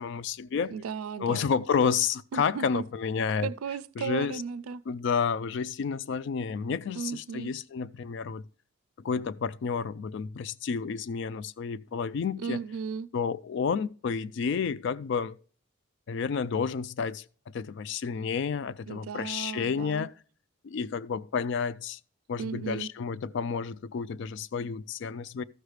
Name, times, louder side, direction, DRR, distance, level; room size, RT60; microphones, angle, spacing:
voice 1, 0.0-0.7 1.2-3.5 4.0-4.4 4.9-8.4 9.0-12.6 13.1-15.4 16.1-20.1 20.6-22.0 22.3-25.4, left 6 dB, 55° left, 0.3 m, -30 dB
voice 2, 0.7-1.5 2.3-2.8 3.4-4.8 6.9-7.5 12.4-13.1 18.9-20.1 22.4-22.9, right 6 dB, 85° right, 0.4 m, -35 dB
13.5 x 6.4 x 3.3 m
head